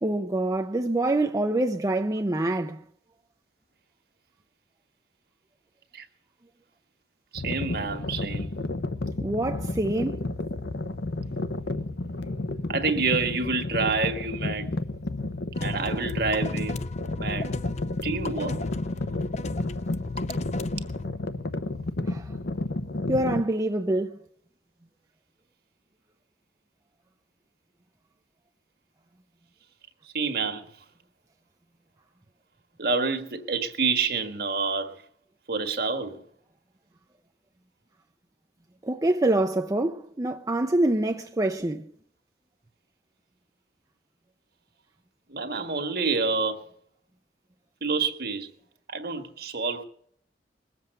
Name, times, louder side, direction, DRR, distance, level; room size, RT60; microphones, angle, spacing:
voice 1, 0.0-2.8 9.2-10.2 22.1-22.2 23.1-24.2 38.8-41.8, right 1 dB, 20° right, 0.6 m, -25 dB
voice 2, 7.3-8.5 12.7-14.7 15.6-16.8 17.2-17.5 18.0-18.6 30.0-30.8 32.8-35.0 35.5-36.2 45.3-46.6 47.8-48.5 48.9-49.8, right 4 dB, 60° right, 1.6 m, -28 dB
sound 1, 7.4-23.4, left 2 dB, 70° left, 0.8 m, -31 dB
sound 2, 15.5-21.1, left 3 dB, 40° left, 0.5 m, -36 dB
21.0 x 7.6 x 6.6 m
head